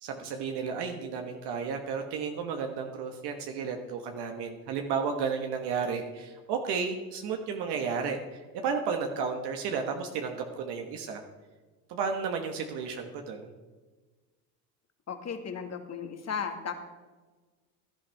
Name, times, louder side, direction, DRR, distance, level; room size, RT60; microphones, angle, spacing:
voice 1, 0.0-11.2 11.9-13.5, right 5 dB, 60° right, 4 dB, 1.6 m, -33 dB
voice 2, 15.1-16.7, left 6 dB, 35° left, 6 dB, 2.0 m, -35 dB
16.0 x 11.5 x 3.5 m, 1.3 s
hypercardioid pair, 75°, 45 cm